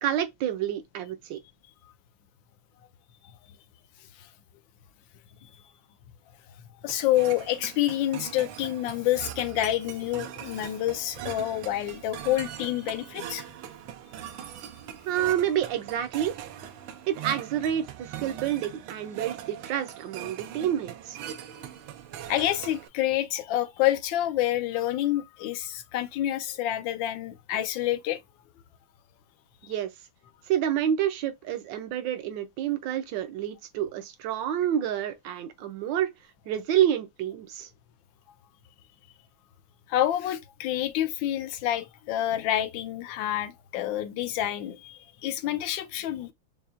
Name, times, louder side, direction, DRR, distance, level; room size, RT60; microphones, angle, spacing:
voice 1, 0.0-1.4 15.0-16.3 17.1-21.2 29.6-29.9 30.5-36.1 36.5-37.7, right 10 dB, 75° right, 1.3 m, -28 dB
voice 2, 6.8-13.4 22.3-28.2 39.9-46.3, left 13 dB, 75° left, 1.3 m, -28 dB
sound 1, 6.9-22.9, right 10 dB, 90° right, 1.4 m, -41 dB
5.5 x 2.3 x 2.4 m
omnidirectional pair, 2.2 m